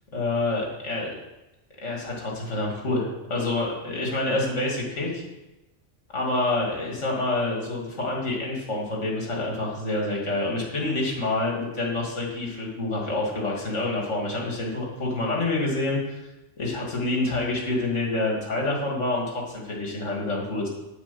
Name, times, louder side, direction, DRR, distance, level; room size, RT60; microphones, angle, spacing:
voice 1, 0.1-1.1 1.8-5.2 6.1-16.2 16.6-20.7, left 2 dB, 65° left, -2 dB, 2.7 m, -27 dB
9.0 x 8.1 x 7.0 m, 0.99 s
omnidirectional pair, 1.3 m